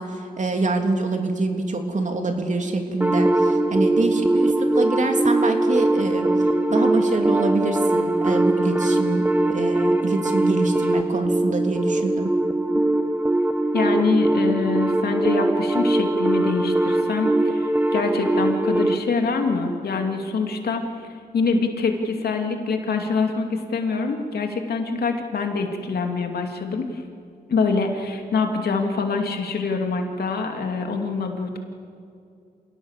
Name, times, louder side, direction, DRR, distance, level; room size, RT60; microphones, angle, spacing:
voice 1, 0.0-6.3 6.7-12.3, right 3 dB, 50° right, 4 dB, 3.1 m, -25 dB
sound 1, 3.0-19.0, right 2 dB, 10° right, 1.4 m, -21 dB
voice 2, 13.7-20.8 21.3-27.0 27.5-31.6, left 4 dB, 75° left, 4 dB, 2.6 m, -25 dB
27.5 x 18.0 x 7.5 m, 2.4 s
cardioid pair, 70°, 16 cm